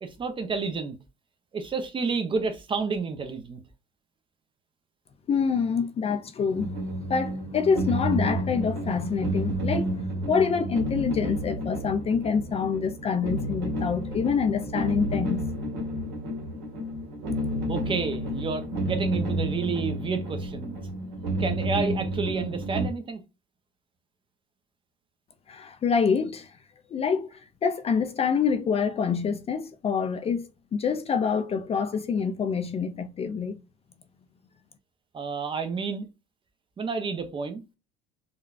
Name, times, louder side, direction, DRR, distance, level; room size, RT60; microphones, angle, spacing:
voice 1, 0.0-1.0 1.5-3.6 17.7-20.8 21.4-23.2 35.1-36.1 36.8-37.6, right 4 dB, 25° right, 0.6 m, -30 dB
voice 2, 5.3-6.8 7.1-9.9 10.3-15.4 25.5-26.5 26.9-33.6, left 6 dB, 30° left, 0.4 m, -26 dB
sound 1, 6.6-22.9, right 1 dB, 65° right, 1.5 m, -30 dB
3.8 x 2.3 x 2.4 m
cardioid pair, 120°, 20 cm